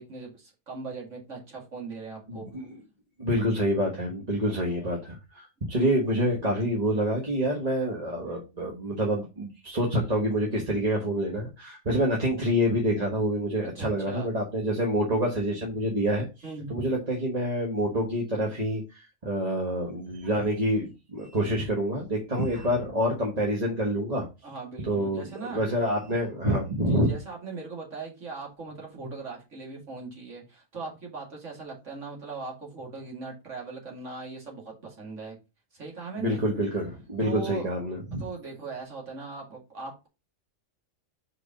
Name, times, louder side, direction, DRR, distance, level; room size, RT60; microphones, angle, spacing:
voice 1, 0.0-2.5 13.8-14.3 16.4-16.7 24.4-25.6 26.8-35.3 35.7-36.4 37.2-37.7 38.2-40.1, right 4 dB, 65° right, 2.7 m, -39 dB
voice 2, 2.3-2.8 3.2-16.3 16.7-24.3 24.9-27.1 36.2-38.2, equal, 30° right, 1.4 m, -27 dB
5.0 x 4.8 x 5.1 m
omnidirectional pair, 1.4 m